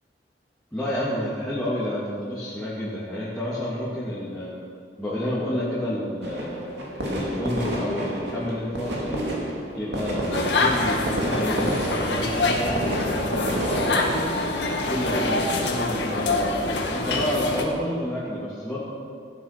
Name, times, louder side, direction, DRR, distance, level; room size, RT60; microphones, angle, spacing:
voice 1, 0.7-4.5 5.0-6.6 7.0-14.3 14.9-18.8, equal, 5° left, -10 dB, 2.8 m, -30 dB
sound 1, 6.2-15.9, equal, 80° right, 2.6 m, -31 dB
sound 2, 10.3-17.6, left 2 dB, 80° left, 1.9 m, -25 dB
16.5 x 10.0 x 6.1 m, 2.3 s
head